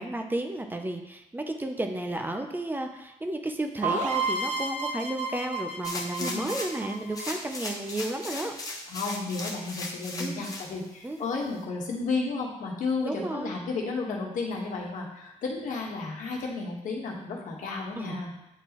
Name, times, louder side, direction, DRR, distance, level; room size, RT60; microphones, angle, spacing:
voice 1, 0.0-8.5 10.2-10.5 11.0-11.3 13.0-13.5 18.0-18.2, right 1 dB, 15° right, 5 dB, 0.6 m, -33 dB
sound 1, 3.8-7.6, right 3 dB, 65° right, 0.8 m, -31 dB
sound 2, 5.8-6.8 7.1-10.7 11.2-11.3, left 2 dB, 25° left, 1.1 m, -37 dB
voice 2, 8.9-18.3, left 3 dB, 85° left, -1 dB, 1.3 m, -32 dB
9.0 x 4.1 x 3.0 m, 0.87 s
cardioid pair, 115°, 13 cm